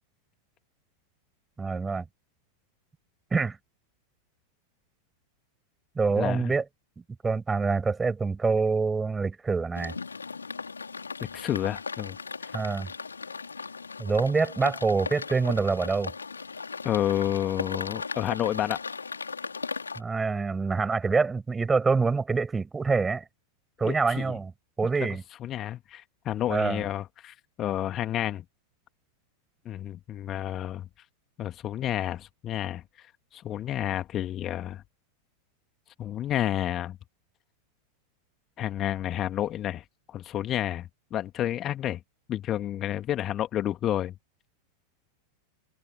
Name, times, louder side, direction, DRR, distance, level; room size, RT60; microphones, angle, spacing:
voice 1, 1.6-2.1 3.3-3.6 5.9-6.6 7.2-10.0 12.5-12.9 14.0-16.1 20.0-23.2 23.8-24.5 24.8-25.2 26.5-26.9, right 4 dB, 15° right, 6.5 m, -26 dB
voice 2, 6.2-6.5 11.2-12.2 12.4-12.5 16.8-18.8 23.8-24.3 25.0-28.4 29.7-30.9 31.4-33.1 33.3-34.8 36.0-37.0 38.6-42.0 42.3-44.1, left 12 dB, 30° left, 2.2 m, -30 dB
sound 1, 9.7-20.0, left 4 dB, 75° left, 3.2 m, -37 dB
figure-of-eight pair, 90°, 0 cm